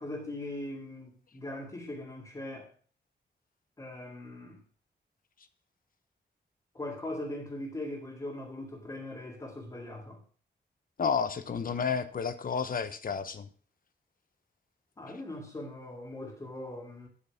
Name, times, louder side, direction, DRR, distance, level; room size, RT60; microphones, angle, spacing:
voice 1, 0.0-2.7 3.8-4.6 6.7-10.2 15.0-17.1, left 1 dB, 20° left, 2.1 m, -40 dB
voice 2, 11.0-13.5, left 6 dB, 50° left, 1.1 m, -31 dB
9.7 x 8.7 x 5.8 m
wide cardioid pair, 170°, 18 cm